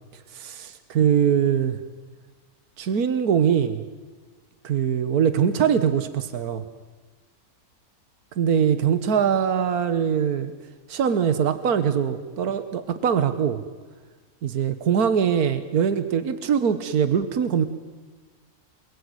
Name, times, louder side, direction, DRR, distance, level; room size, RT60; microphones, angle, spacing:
voice 1, 0.3-1.8 2.8-3.8 4.6-6.6 8.4-10.5 10.9-13.6 14.4-17.7, right 8 dB, 80° right, 11 dB, 1.7 m, -22 dB
28.5 x 21.5 x 9.7 m, 1.4 s
omnidirectional pair, 1.6 m